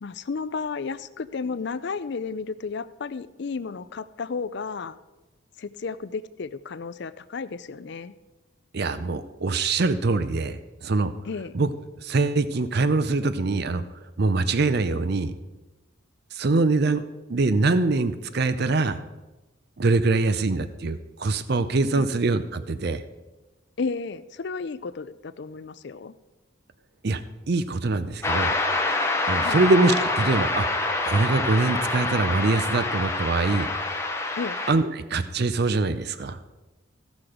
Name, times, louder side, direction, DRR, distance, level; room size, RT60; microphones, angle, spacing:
voice 1, 0.0-5.0 5.6-8.1 11.2-11.5 21.9-22.1 23.8-26.1 29.4-29.6 34.4-34.6, left 4 dB, 55° left, 14 dB, 0.4 m, -33 dB
voice 2, 8.7-11.1 11.5-11.7 12.0-13.8 14.2-15.3 16.3-17.0 17.3-19.0 19.8-23.0 27.0-27.2 27.5-28.5 29.3-30.7 31.1-33.7 34.7-36.4, right 3 dB, 50° right, 12 dB, 0.5 m, -23 dB
sound 1, 28.2-34.7, left 2 dB, 15° left, 0.8 m, -26 dB
15.5 x 6.1 x 5.0 m, 1.1 s
head